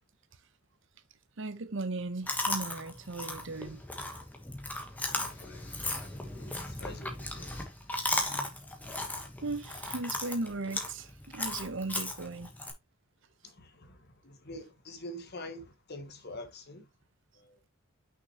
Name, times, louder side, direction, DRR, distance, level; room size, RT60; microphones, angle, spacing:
voice 1, 1.4-3.8 9.4-12.5, right 2 dB, 60° right, 0.8 m, -37 dB
Chewing mastication, 2.3-12.7, left 2 dB, 10° left, 1.3 m, -36 dB
voice 2, 5.0-7.7 13.4-16.9 17.3-17.6, left 1 dB, 50° left, 1.4 m, -46 dB
6.0 x 5.9 x 3.0 m
head